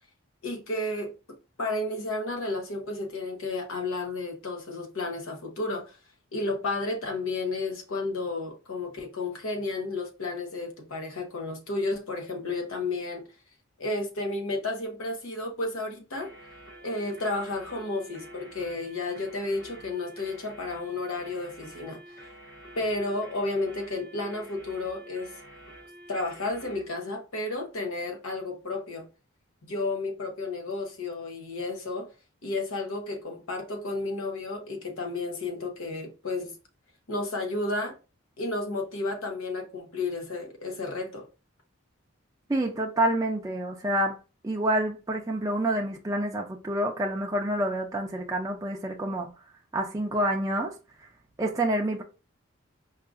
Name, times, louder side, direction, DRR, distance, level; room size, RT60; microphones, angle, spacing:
voice 1, 0.4-1.1 1.6-6.0 6.3-13.2 13.8-16.3 16.8-22.3 22.8-25.3 26.1-29.1 29.6-32.1 32.4-36.5 37.1-37.9 38.4-41.3, left 2 dB, 85° left, 0.9 m, -32 dB
Emergency Alarm, 16.1-26.9, right 1 dB, 60° left, 1.6 m, -48 dB
voice 2, 42.5-44.2 44.4-49.3 49.7-50.7 51.4-52.0, right 1 dB, 15° right, 0.4 m, -28 dB
4.6 x 2.4 x 2.4 m
head